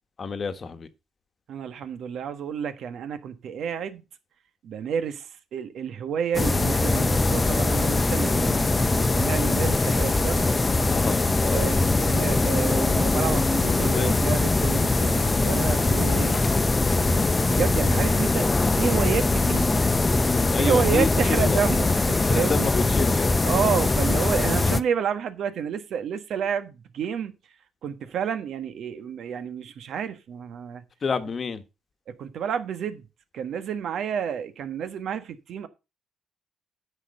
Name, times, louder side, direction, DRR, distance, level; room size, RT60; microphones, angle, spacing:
voice 1, 0.2-0.9 10.9-11.7 13.7-14.3 20.5-21.6 22.2-23.3 31.0-31.6, left 5 dB, 40° left, 1.2 m, -29 dB
voice 2, 1.5-4.0 4.6-10.9 11.5-16.8 17.5-18.5 18.7-19.7 20.4-22.7 23.4-27.3 27.8-30.8 32.1-33.1 33.3-35.7, right 7 dB, 70° right, 1.3 m, -30 dB
sound 1, 6.3-24.8, left 2 dB, 25° left, 0.7 m, -22 dB
9.8 x 5.8 x 5.4 m
cardioid pair, 90°, 0 cm